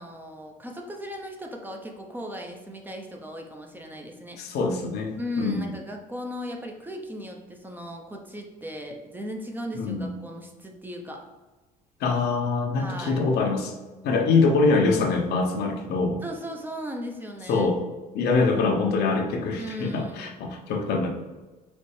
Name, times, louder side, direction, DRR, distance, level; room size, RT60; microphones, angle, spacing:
voice 1, 0.0-4.4 5.2-11.3 12.8-13.2 16.2-17.7 19.6-20.4, equal, 10° right, 2 dB, 0.6 m, -37 dB
voice 2, 4.4-5.7 9.7-10.1 12.0-13.7 14.0-16.2 17.5-17.8 18.1-21.1, left 3 dB, 75° left, 3 dB, 0.8 m, -24 dB
4.3 x 3.2 x 3.2 m, 1.2 s
cardioid pair, 110°, 17 cm